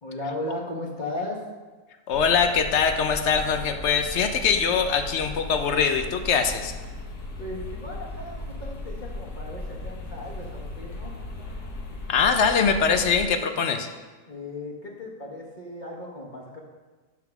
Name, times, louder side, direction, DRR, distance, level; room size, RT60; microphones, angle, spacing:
voice 1, 0.0-1.4 7.4-11.1 14.3-16.6, left 1 dB, 30° left, -3 dB, 1.4 m, -36 dB
sound 1, 2.1-13.3, left 2 dB, 80° left, 1.7 m, -37 dB
voice 2, 2.1-6.7 12.1-13.9, left 6 dB, 55° left, 7 dB, 0.8 m, -22 dB
10.5 x 3.8 x 5.9 m, 1.3 s
omnidirectional pair, 1.6 m